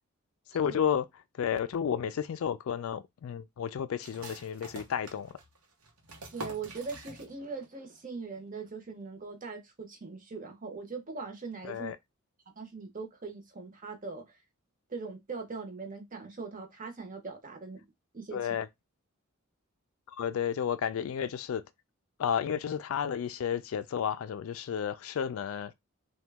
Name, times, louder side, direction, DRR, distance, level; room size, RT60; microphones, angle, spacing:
voice 1, 0.5-1.0 1.4-5.3 11.7-12.0 18.3-18.7 20.2-21.6 22.2-25.7, left 8 dB, 65° left, 0.3 m, -32 dB
sound 1, 4.0-7.7 7.9-8.0 8.5-8.9, right 2 dB, 90° right, 0.8 m, -46 dB
voice 2, 6.3-11.9 12.6-14.4 14.9-17.8 18.1-18.4, right 4 dB, 40° right, 0.8 m, -41 dB
2.9 x 2.2 x 3.4 m
head